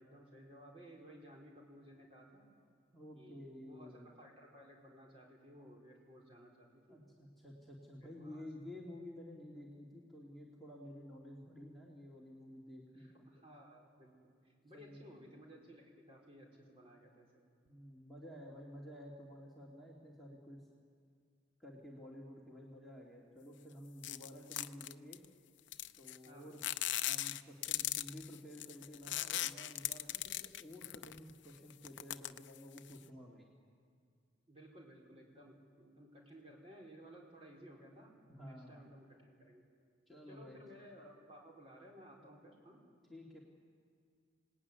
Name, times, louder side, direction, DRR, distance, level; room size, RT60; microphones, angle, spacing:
voice 1, 0.0-2.5 3.1-7.0 8.0-8.4 13.0-17.4 26.2-26.6 34.5-38.1 38.4-39.7 40.3-42.8, equal, 30° right, -2 dB, 4.6 m, -57 dB
voice 2, 2.9-4.1 6.9-13.1 14.7-15.1 17.6-20.6 21.6-25.2 26.0-26.6 27.0-33.5 38.3-38.8 40.1-40.6 43.1-43.4, left 1 dB, ahead, -5 dB, 2.6 m, -52 dB
sound 1, 24.0-25.3 25.7-26.3 26.6-31.3 31.7-33.0, left 14 dB, 70° left, 0.6 m, -38 dB
26.5 x 18.5 x 9.8 m, 2.1 s
head